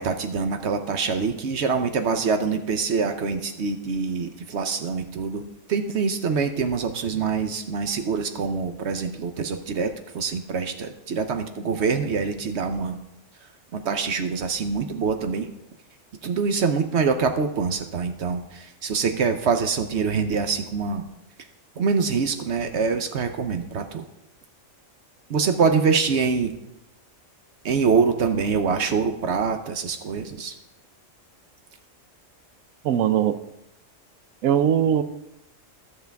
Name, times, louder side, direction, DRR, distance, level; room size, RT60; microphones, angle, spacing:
voice 1, 0.0-13.0 13.7-15.5 16.2-21.0 21.8-24.1 25.3-26.6 27.6-30.5, right 5 dB, 60° right, 8 dB, 1.0 m, -25 dB
voice 2, 32.8-33.4 34.4-35.0, right 9 dB, 85° right, 11 dB, 1.1 m, -20 dB
13.0 x 6.7 x 3.5 m, 0.87 s
omnidirectional pair, 1.4 m